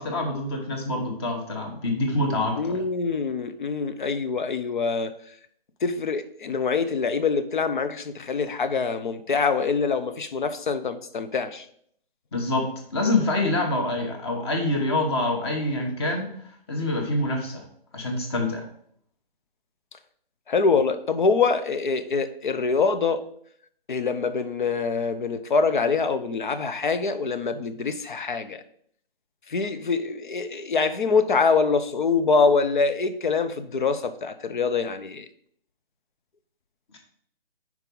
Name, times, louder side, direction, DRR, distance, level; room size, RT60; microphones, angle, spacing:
voice 1, 0.0-2.8 12.3-16.3 16.7-17.6 17.9-18.7, left 2 dB, 25° left, 1.1 m, -26 dB
voice 2, 2.6-5.1 5.8-11.6 20.5-23.2 23.9-28.6 29.5-35.3, left 4 dB, 55° left, 0.7 m, -24 dB
5.5 x 4.7 x 5.3 m
hypercardioid pair, 160°, 30 cm